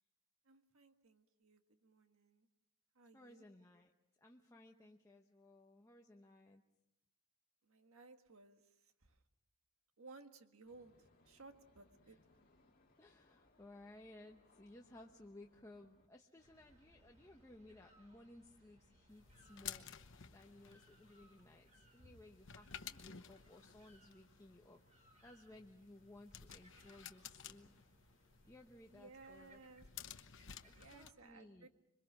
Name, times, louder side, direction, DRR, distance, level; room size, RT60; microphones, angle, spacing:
voice 1, 0.4-2.5 2.9-3.4 7.6-8.7 9.0-9.2 10.0-12.2 22.0-22.2 28.9-29.9 30.7-31.7, right 3 dB, 70° right, 7 dB, 1.6 m, -60 dB
voice 2, 3.1-3.9 4.2-6.6 12.0-12.2 13.0-19.9 20.3-27.9 28.5-29.6 30.6-31.7, left 1 dB, 15° left, 1 dB, 1.0 m, -60 dB
sound 1, 10.6-16.1, left 2 dB, 40° left, 2.3 m, -72 dB
sound 2, 16.4-31.1, right 1 dB, 35° right, 5.9 m, -70 dB
sound 3, 19.1-31.1, left 9 dB, 60° left, 1.0 m, -55 dB
26.5 x 23.0 x 6.2 m, 0.88 s
head